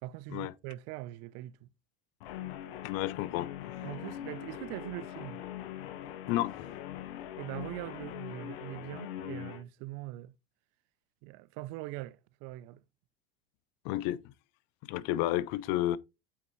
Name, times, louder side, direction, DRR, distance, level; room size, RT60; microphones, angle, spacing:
voice 1, 0.0-1.7 3.8-5.4 7.4-10.3 11.2-12.8, right 18 dB, 60° right, 0.5 m, -42 dB
Guitar, 2.2-9.6, left 11 dB, 80° left, 1.0 m, -42 dB
voice 2, 2.8-3.9 6.3-6.7 13.8-14.2 14.8-16.0, left 14 dB, 60° left, 0.6 m, -31 dB
8.5 x 4.0 x 3.1 m
hypercardioid pair, 95°, 29 cm